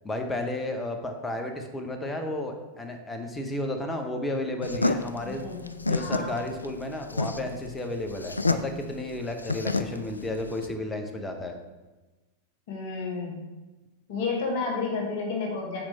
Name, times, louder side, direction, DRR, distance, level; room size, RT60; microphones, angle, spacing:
voice 1, 0.0-5.5 5.9-11.5, left 1 dB, 10° left, 4 dB, 0.8 m, -33 dB
sound 1, 4.6-10.7, left 3 dB, 80° left, 0.3 m, -29 dB
voice 2, 5.2-6.4 12.7-13.4 14.1-15.9, left 4 dB, 50° left, 0 dB, 1.3 m, -31 dB
6.0 x 4.7 x 4.2 m, 1.2 s
figure-of-eight pair, 90°, 0 cm